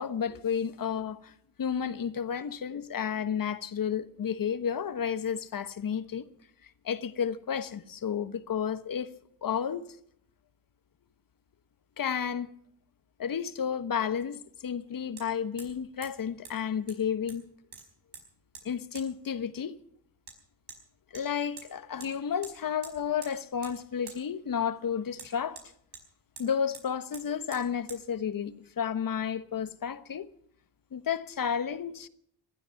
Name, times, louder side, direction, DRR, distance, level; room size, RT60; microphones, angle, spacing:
voice 1, 0.0-1.3 1.6-6.3 6.6-9.1 9.4-9.8 12.0-12.5 13.2-17.4 18.6-19.7 21.1-25.6 26.4-30.3 30.9-32.1, left 7 dB, 50° left, 1.2 m, -32 dB
Hammer, 13.2-13.3 15.2-15.3 15.6-15.8 16.0-16.1 16.5-16.6 16.9-17.4 17.7-18.2 18.6-18.7 19.0-19.1 20.3-20.4 20.7-20.8 21.2-21.7 22.0-22.1 22.4-22.5 22.8-23.3 23.6-23.8 24.1-24.2 25.2-26.1 26.4-26.5 26.7-26.9 27.1-27.3 27.5-27.6 27.9-28.0, right 5 dB, 70° right, 4.9 m, -46 dB
19.0 x 12.5 x 5.8 m
supercardioid pair, 50°, 42 cm